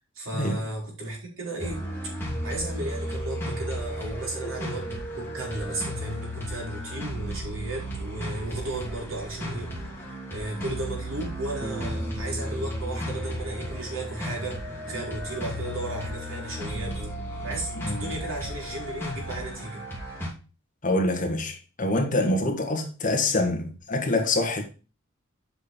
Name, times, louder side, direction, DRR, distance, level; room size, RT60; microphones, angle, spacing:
voice 1, 0.1-1.8 2.4-9.9 10.3-19.9, right 2 dB, 75° right, 4.2 m, -35 dB
sound 1, 1.6-20.3, equal, 10° left, 2.6 m, -34 dB
Bass guitar, 11.6-17.9, right 1 dB, 20° right, 0.9 m, -42 dB
voice 2, 17.8-18.1 20.8-24.6, left 2 dB, 40° left, 1.5 m, -26 dB
7.9 x 5.4 x 4.4 m
head